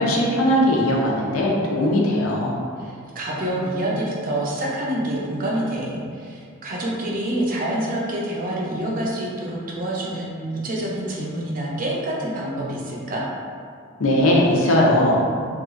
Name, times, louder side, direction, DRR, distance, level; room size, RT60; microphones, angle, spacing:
voice 1, 0.0-2.5 14.0-15.2, left 1 dB, 80° left, -2 dB, 0.5 m, -19 dB
voice 2, 2.8-13.2, right 1 dB, 40° right, -4 dB, 0.5 m, -27 dB
2.9 x 2.4 x 2.4 m, 2.3 s
head